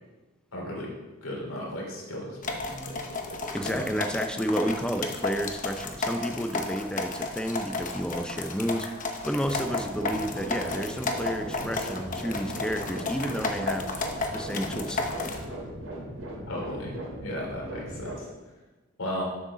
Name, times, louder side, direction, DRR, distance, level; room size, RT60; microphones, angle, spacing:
voice 1, 0.5-0.9 1.2-3.8 16.5-17.0 17.2-18.3 19.0-19.2, equal, 80° left, -2 dB, 3.0 m, -36 dB
sound 1, 2.4-15.4, left 3 dB, 40° left, 0.9 m, -33 dB
voice 2, 3.5-13.9 14.3-15.1, equal, 5° left, 6 dB, 0.6 m, -31 dB
sound 2, 9.3-18.2, right 1 dB, 75° right, 2.8 m, -38 dB
7.8 x 6.5 x 6.2 m, 1.2 s
head